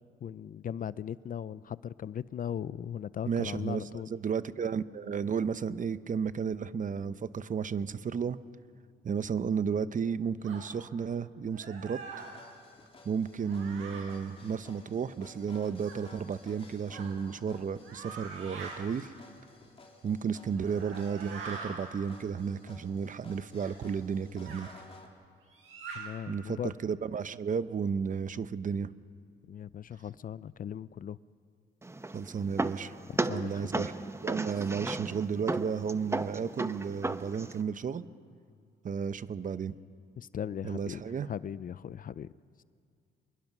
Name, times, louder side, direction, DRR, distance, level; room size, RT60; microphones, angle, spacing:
voice 1, 0.2-4.1 25.9-26.7 29.5-31.2 33.1-33.9 40.2-42.3, left 9 dB, 45° left, 18 dB, 0.5 m, -38 dB
voice 2, 3.3-8.4 9.0-12.0 13.0-19.1 20.0-24.7 26.3-28.9 32.1-33.0 33.2-33.9 34.2-38.0 38.8-39.8 40.6-41.3, right 6 dB, 40° right, 14 dB, 0.8 m, -33 dB
sound 1, 10.4-10.6 11.5-12.3 13.4-14.0 15.8-16.0 16.9-17.1 17.8-18.7 20.5-21.7 23.6-23.7 24.4-24.6 25.5-26.0, right 5 dB, 85° right, 7.7 m, -43 dB
sound 2, 12.2-25.1, left 2 dB, 30° left, 3.5 m, -55 dB
sound 3, 31.8-37.6, right 2 dB, 15° right, 0.9 m, -35 dB
26.5 x 22.0 x 6.0 m, 2.3 s
cardioid pair, 90°, 20 cm